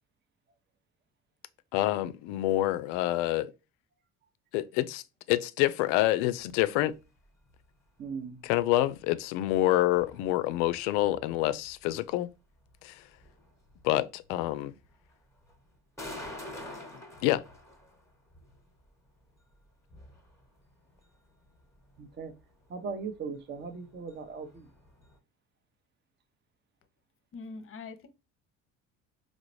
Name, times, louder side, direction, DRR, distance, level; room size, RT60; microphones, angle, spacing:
voice 1, 1.7-3.5 4.5-5.0 5.3-6.9 8.4-12.3 12.8-13.0 13.8-14.7 17.2-17.4, left 15 dB, 60° left, 0.5 m, -27 dB
sound 1, 6.0-25.2, left 1 dB, 5° left, 1.2 m, -51 dB
voice 2, 8.0-8.4 22.0-22.3 22.7-24.7, right 5 dB, 25° right, 0.7 m, -38 dB
voice 3, 27.3-28.1, left 4 dB, 30° left, 0.8 m, -43 dB
4.8 x 2.0 x 3.0 m
figure-of-eight pair, 60°, 41 cm